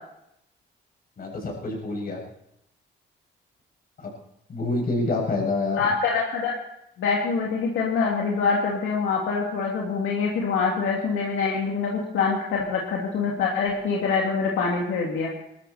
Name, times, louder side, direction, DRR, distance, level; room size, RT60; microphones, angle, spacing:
voice 1, 1.2-2.2 4.0-4.1 4.5-5.8, left 2 dB, 50° left, -1 dB, 7.4 m, -27 dB
voice 2, 5.7-6.5 7.0-15.3, left 5 dB, 80° left, -2 dB, 2.7 m, -25 dB
20.5 x 13.5 x 4.3 m, 0.80 s
cardioid pair, 90°, 20 cm